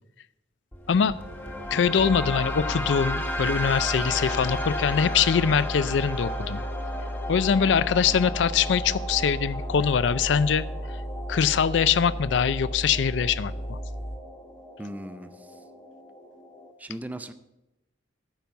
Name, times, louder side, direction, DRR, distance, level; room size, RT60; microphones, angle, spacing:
sound 1, 0.7-16.7, left 1 dB, 10° left, 0.9 m, -35 dB
voice 1, 1.7-6.6 7.3-11.0 11.3-13.8, left 7 dB, 70° left, 16 dB, 0.4 m, -23 dB
sound 2, 2.0-14.2, equal, 30° left, 1.1 m, -34 dB
voice 2, 14.8-15.5 16.8-17.3, right 1 dB, 10° right, 10 dB, 0.5 m, -37 dB
9.0 x 5.4 x 7.2 m, 0.92 s
head